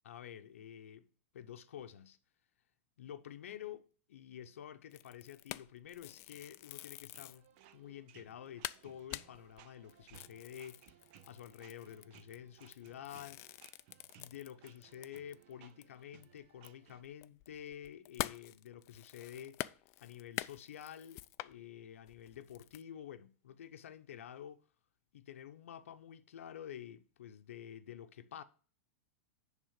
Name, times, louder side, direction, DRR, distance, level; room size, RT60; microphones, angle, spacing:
voice 1, 0.0-1.1 1.3-2.2 3.0-7.5 7.7-10.9 11.3-13.4 14.2-24.6 25.1-28.4, left 10 dB, 80° left, 0.7 m, -50 dB
sound 1, 4.9-7.5 8.0-8.1 8.3-8.4 8.6-15.5 15.8-15.9 16.2-21.5 22.1-22.8, left 18 dB, 40° left, 0.3 m, -46 dB
sound 2, 7.1-17.0, right 10 dB, 50° right, 0.7 m, -62 dB
10.0 x 3.7 x 6.4 m
hypercardioid pair, 125°, 7 cm